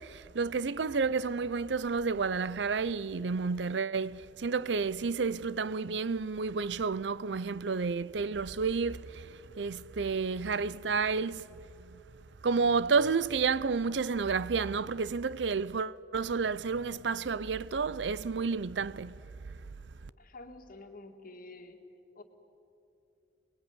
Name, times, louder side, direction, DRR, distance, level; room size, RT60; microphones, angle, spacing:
voice 1, 0.0-11.5 11.8-12.0 12.4-19.2 19.5-19.6, right 4 dB, 75° right, 0.6 m, -31 dB
voice 2, 20.2-21.8 22.2-22.3, left 2 dB, 50° left, 2.3 m, -49 dB
29.0 x 20.5 x 9.8 m
head